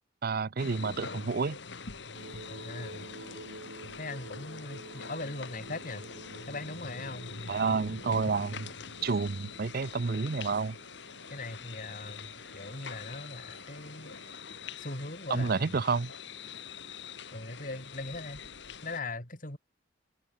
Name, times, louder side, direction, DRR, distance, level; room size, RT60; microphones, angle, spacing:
voice 1, 0.2-1.6 7.5-8.7 9.0-10.8 15.3-16.1, right 4 dB, 50° right, 0.6 m, -29 dB
sound 1, 0.6-19.0, left 5 dB, 65° left, 2.0 m, -45 dB
sound 2, 2.1-14.4, right 2 dB, 85° right, 4.1 m, -51 dB
voice 2, 2.5-3.1 4.0-6.1 6.5-7.3 11.3-14.1 14.8-15.8 17.3-18.4 18.8-19.6, left 2 dB, 45° left, 4.6 m, -40 dB
open air
head